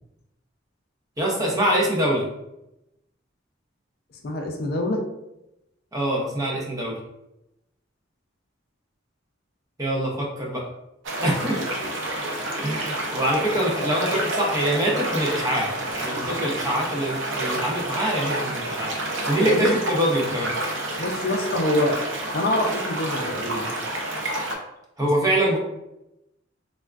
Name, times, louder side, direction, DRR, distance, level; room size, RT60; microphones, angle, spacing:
voice 1, 1.2-2.2 5.9-7.0 9.8-10.6 11.2-11.7 12.6-18.9 19.3-20.5 25.0-25.6, right 1 dB, 20° right, -2 dB, 0.6 m, -24 dB
voice 2, 4.2-5.0 19.4-19.8 21.0-22.0 22.3-23.7 25.0-25.1 25.4-25.5, left 1 dB, 55° left, 2 dB, 0.4 m, -25 dB
sound 1, 11.0-24.5, right 1 dB, 70° right, 0.6 m, -29 dB
3.3 x 2.3 x 2.3 m, 0.87 s
head